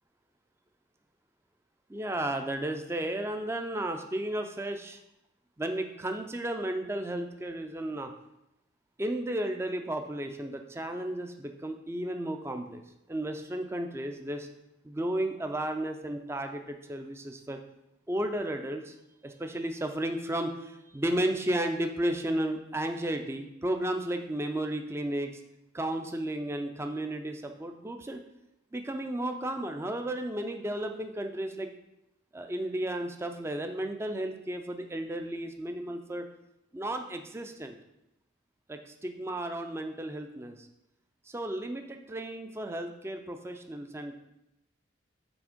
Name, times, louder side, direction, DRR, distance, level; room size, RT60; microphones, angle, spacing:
voice 1, 1.9-5.0 5.6-8.1 9.0-12.8 13.1-14.5 14.8-17.6 18.1-19.0 19.2-25.3 25.7-28.2 28.7-31.7 32.3-36.3 36.7-37.8 38.7-40.7 41.3-44.1, right 1 dB, 15° right, 5 dB, 0.4 m, -33 dB
6.0 x 4.2 x 5.1 m, 0.87 s
head